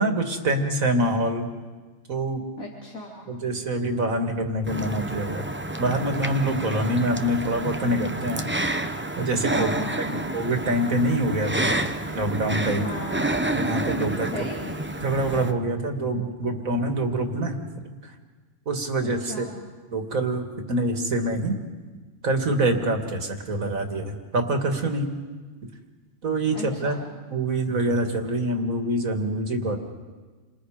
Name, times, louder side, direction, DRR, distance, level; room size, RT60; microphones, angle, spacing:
voice 1, 0.0-1.5 2.1-2.4 3.3-5.4 5.8-8.5 9.2-9.7 10.0-12.9 13.5-14.3 15.0-18.1 18.7-19.5 19.9-21.5 22.2-25.1 26.2-27.0 27.3-29.8, right 1 dB, 75° right, 4 dB, 2.6 m, -25 dB
voice 2, 2.6-3.3 9.5-10.2 12.8-13.2 14.3-14.7 19.0-19.5 26.5-27.0, left 1 dB, 80° left, -3 dB, 4.0 m, -35 dB
sound 1, 4.7-15.5, right 1 dB, 10° right, 0.8 m, -29 dB
29.5 x 26.5 x 5.1 m, 1.4 s
omnidirectional pair, 1.4 m